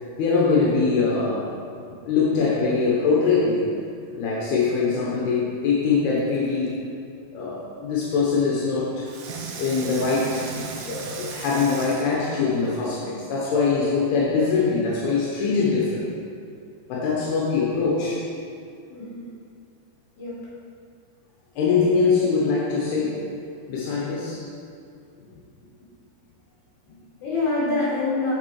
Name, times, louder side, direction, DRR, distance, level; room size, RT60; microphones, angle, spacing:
voice 1, 0.2-1.5 2.1-3.7 4.2-6.7 7.3-9.1 9.6-16.2 16.9-18.2 21.6-23.2 23.7-24.4, left 4 dB, 80° left, -5 dB, 3.1 m, -23 dB
Water tap faucet / Sink (filling or washing), 6.1-6.8 9.0-13.0 13.6-13.7, right 4 dB, 70° right, 2.2 m, -37 dB
voice 2, 18.9-19.3 20.2-20.4 25.3-25.4 26.9-28.3, left 3 dB, 50° left, -8 dB, 3.6 m, -27 dB
7.3 x 7.3 x 4.7 m, 2.4 s
omnidirectional pair, 4.5 m